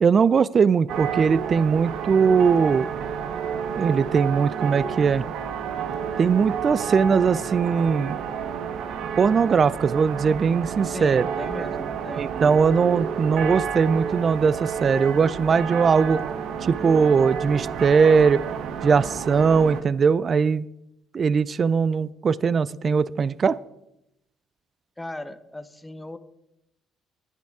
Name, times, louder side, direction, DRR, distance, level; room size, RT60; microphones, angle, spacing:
voice 1, 0.0-2.9 3.7-5.3 6.2-8.2 9.2-11.3 12.2-16.2 16.6-18.4 18.8-20.7 21.1-23.6, right 5 dB, 45° right, 21 dB, 0.4 m, -20 dB
sound 1, 0.9-19.8, right 7 dB, 70° right, 0.9 m, -30 dB
voice 2, 10.8-12.3 25.0-26.2, left 1 dB, 10° left, 12 dB, 1.0 m, -37 dB
10.5 x 10.0 x 4.8 m, 0.86 s
supercardioid pair, 70°, 0 cm